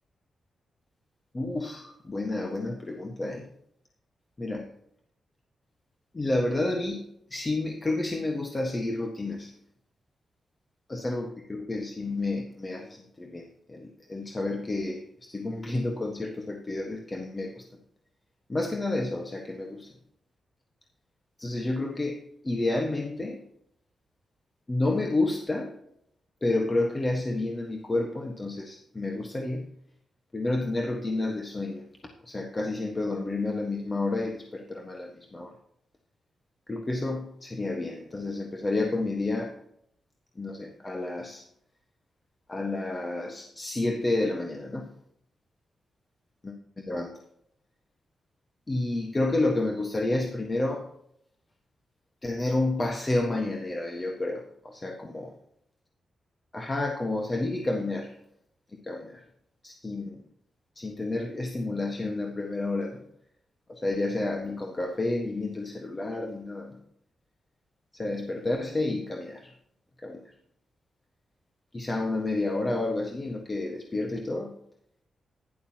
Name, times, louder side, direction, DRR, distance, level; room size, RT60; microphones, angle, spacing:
voice 1, 1.3-3.5 4.4-4.7 6.1-9.5 10.9-17.6 18.5-19.9 21.4-23.4 24.7-25.7 26.4-29.7 30.3-31.9 32.2-35.5 36.7-39.5 40.4-41.4 42.5-44.9 46.4-47.1 48.7-50.9 52.2-55.3 56.5-58.2 58.7-59.2 59.6-60.2 60.7-63.0 63.7-66.8 67.9-69.5 70.0-70.2 71.7-74.5, left 2 dB, 25° left, 2 dB, 1.4 m, -30 dB
11.5 x 11.0 x 2.9 m, 0.74 s
cardioid pair, 90°, 0 cm